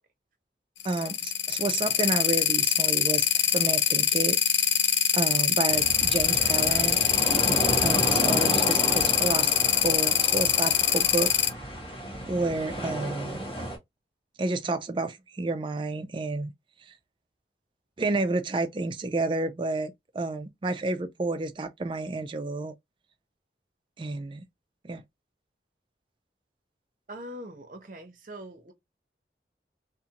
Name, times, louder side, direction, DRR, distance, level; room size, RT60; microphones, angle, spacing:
sound 1, 0.8-11.5, left 9 dB, 85° left, 0.4 m, -23 dB
voice 1, 0.8-4.4 5.1-7.0 7.8-9.6 9.8-11.3 12.3-13.5 14.4-16.5 16.8-16.9 18.0-22.8 24.0-24.4 24.8-25.0, right 2 dB, 30° right, 0.3 m, -30 dB
sound 2, 5.7-13.8, right 1 dB, 35° left, 1.2 m, -32 dB
voice 2, 27.1-28.7, equal, 45° right, 0.7 m, -42 dB
2.5 x 2.5 x 2.8 m
head